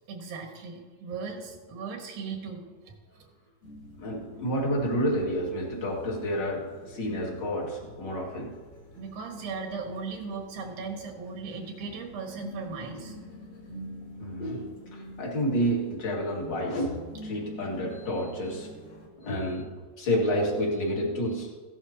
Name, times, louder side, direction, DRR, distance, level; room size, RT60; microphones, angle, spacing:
voice 1, 0.1-3.3 9.0-13.1, right 5 dB, 90° right, 1 dB, 3.6 m, -38 dB
sound 1, 3.6-19.1, equal, 60° left, 3.8 m, -47 dB
voice 2, 4.0-8.5 14.2-18.7 19.2-21.5, equal, 35° left, -2 dB, 2.6 m, -29 dB
16.5 x 11.5 x 2.9 m, 1.4 s
omnidirectional pair, 4.0 m